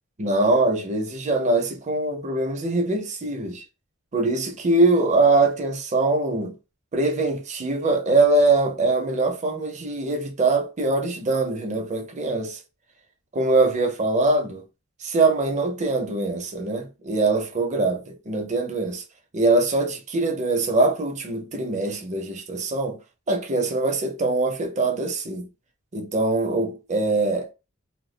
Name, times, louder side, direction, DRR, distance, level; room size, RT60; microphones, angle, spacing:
voice 1, 0.2-3.6 4.1-6.5 6.9-12.6 13.3-14.6 15.0-19.0 19.3-23.0 23.3-25.5 25.9-27.5, right 2 dB, 35° right, 0.6 m, -23 dB
2.6 x 2.2 x 3.2 m
head